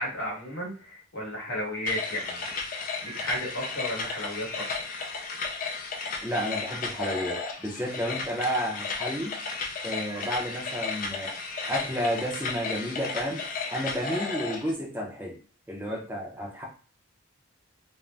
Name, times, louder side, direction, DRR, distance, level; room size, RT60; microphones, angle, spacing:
voice 1, 0.0-4.9 10.1-10.2 15.9-16.0, equal, 65° left, -3 dB, 1.1 m, -34 dB
sound 1, 1.9-14.7, left 4 dB, 40° left, 0.4 m, -34 dB
voice 2, 6.2-9.3 9.8-11.3 11.7-13.4 13.7-15.3 15.7-16.6, equal, 10° right, -3 dB, 0.6 m, -31 dB
2.5 x 2.0 x 3.2 m, 0.39 s
head